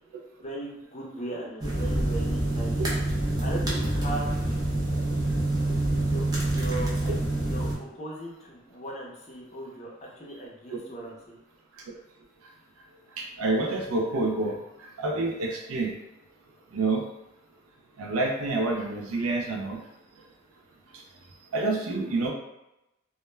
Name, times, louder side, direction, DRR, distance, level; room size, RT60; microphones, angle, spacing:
voice 1, 0.4-2.9 3.4-4.3 5.7-9.9 10.2-11.4, right 1 dB, 30° left, -4 dB, 0.6 m, -38 dB
sound 1, 1.6-7.7, right 1 dB, 20° right, 0.5 m, -26 dB
voice 2, 13.2-15.9 16.7-17.0 18.0-19.8 21.5-22.3, right 2 dB, 90° right, 0 dB, 0.4 m, -28 dB
2.1 x 2.1 x 3.1 m, 0.91 s
head